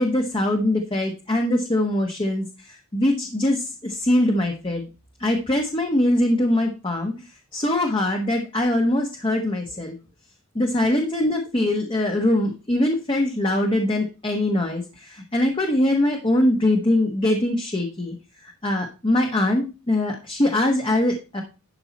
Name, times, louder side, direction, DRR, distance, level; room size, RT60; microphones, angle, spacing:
voice 1, 0.0-4.8 5.2-10.0 10.5-18.2 18.4-21.4, left 1 dB, 25° left, 2 dB, 1.2 m, -22 dB
11.5 x 5.7 x 4.2 m, 0.31 s
head